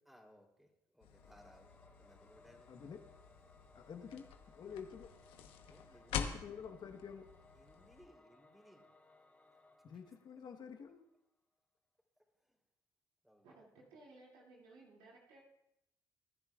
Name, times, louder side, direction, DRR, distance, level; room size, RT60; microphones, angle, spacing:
voice 1, 0.1-1.7 2.0-2.7 4.0-4.3 5.7-6.6 7.5-8.9 9.9-10.0 12.5-12.6 13.2-13.9, equal, 5° right, 1 dB, 3.4 m, -64 dB
sound 1, 1.0-8.1, left 8 dB, 80° left, 1.1 m, -47 dB
Singing / Musical instrument, 1.1-11.1, left 2 dB, 20° left, 3.2 m, -65 dB
voice 2, 2.7-3.0 3.7-5.1 6.1-7.3 9.8-11.1, left 6 dB, 55° left, 4 dB, 1.2 m, -48 dB
voice 3, 13.4-15.4, right 2 dB, 80° right, -4 dB, 2.5 m, -59 dB
22.0 x 10.5 x 2.4 m, 0.85 s
supercardioid pair, 60°, 9 cm